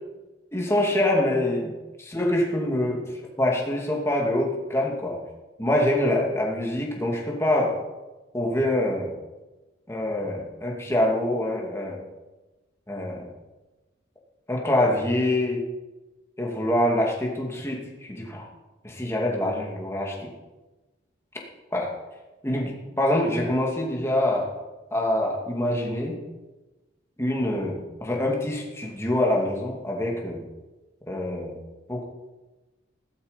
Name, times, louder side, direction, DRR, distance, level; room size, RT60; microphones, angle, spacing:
voice 1, 0.5-5.2 5.6-7.8 8.3-9.1 9.9-12.0 12.9-13.3 14.5-15.6 16.4-18.4 18.8-20.3 21.7-21.9 22.4-24.5 24.9-26.2 27.2-30.4 31.1-31.6 31.9-32.0, left 1 dB, 15° left, -1 dB, 2.5 m, -25 dB
16.5 x 12.5 x 5.3 m, 1.1 s
head